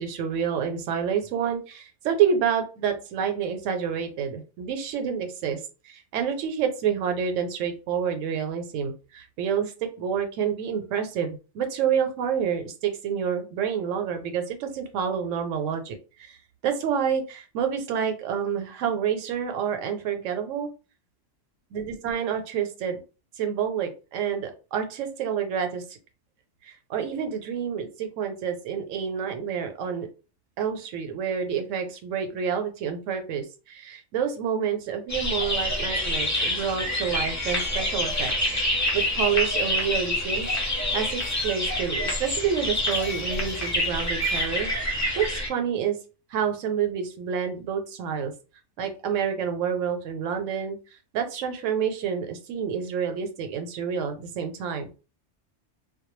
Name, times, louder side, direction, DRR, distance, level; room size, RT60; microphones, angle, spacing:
voice 1, 0.0-5.6 5.8-16.4 16.6-20.7 21.7-23.0 23.4-26.0 26.6-30.1 30.6-40.5 40.9-46.0 46.3-48.3 48.8-50.8 51.1-54.9, right 7 dB, 80° right, 7 dB, 0.9 m, -28 dB
sound 1, 35.1-45.5, left 1 dB, 20° left, 0.6 m, -27 dB
sound 2, 35.9-44.4, left 2 dB, 55° left, 0.8 m, -39 dB
2.1 x 2.1 x 3.0 m, 0.33 s
omnidirectional pair, 1.3 m